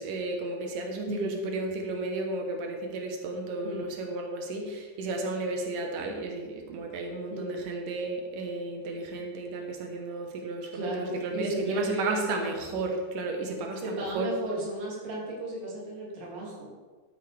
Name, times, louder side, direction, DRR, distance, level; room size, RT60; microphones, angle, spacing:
voice 1, 0.0-14.3, right 2 dB, 85° right, 2 dB, 2.8 m, -33 dB
voice 2, 1.1-1.4 3.6-3.9 7.3-7.6 10.7-12.6 13.8-16.7, right 1 dB, 50° right, -5 dB, 3.7 m, -34 dB
12.5 x 10.0 x 3.4 m, 1.4 s
omnidirectional pair, 3.7 m